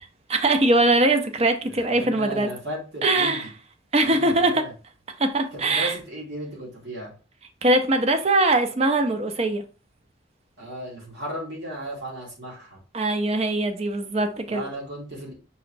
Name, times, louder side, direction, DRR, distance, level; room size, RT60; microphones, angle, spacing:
voice 1, 0.3-2.5 3.0-3.5 3.9-4.6 5.2-5.9 7.6-9.6 12.9-14.6, right 2 dB, 35° right, 0.5 m, -21 dB
voice 2, 1.7-3.5 4.0-4.7 5.6-7.1 10.6-12.8 14.5-15.3, right 1 dB, 70° right, 1.9 m, -35 dB
5.4 x 3.0 x 2.6 m
head